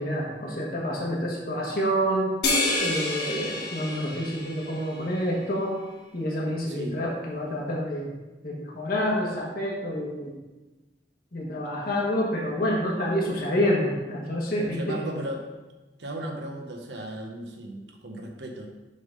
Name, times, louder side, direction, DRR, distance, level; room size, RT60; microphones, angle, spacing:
voice 1, 0.0-2.3 2.8-5.7 6.1-8.1 8.4-10.3 11.3-15.1, equal, 55° left, -3 dB, 1.1 m, -28 dB
sound 1, 2.4-5.1, left 2 dB, 70° left, 1.7 m, -28 dB
voice 2, 14.8-15.4 16.0-18.7, right 1 dB, 80° right, 2 dB, 0.8 m, -36 dB
6.6 x 3.7 x 5.2 m, 1.1 s
head